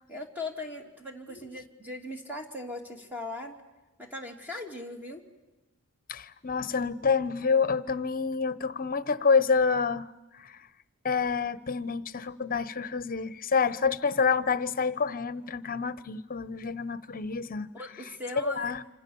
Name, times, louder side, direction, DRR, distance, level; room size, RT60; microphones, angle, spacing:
voice 1, 0.1-3.6 4.0-5.2 17.7-18.7, left 2 dB, 10° right, 2.6 m, -39 dB
voice 2, 6.1-10.1 10.3-10.6 11.0-17.7 18.4-18.8, left 5 dB, 40° left, 1.0 m, -28 dB
27.0 x 27.0 x 7.1 m
head